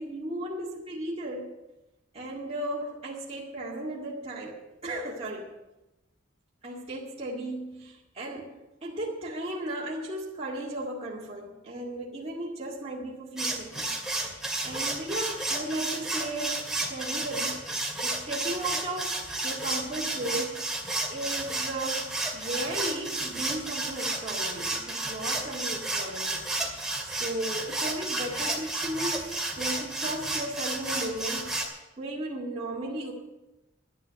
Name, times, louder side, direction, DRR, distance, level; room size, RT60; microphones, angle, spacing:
voice 1, 0.0-1.5 2.1-5.5 6.6-20.7 21.1-31.6 32.0-33.1, right 1 dB, 30° right, -5 dB, 2.0 m, -36 dB
sound 1, 13.4-31.7, right 2 dB, 5° right, 2.4 m, -32 dB
11.5 x 11.0 x 6.8 m, 0.98 s
head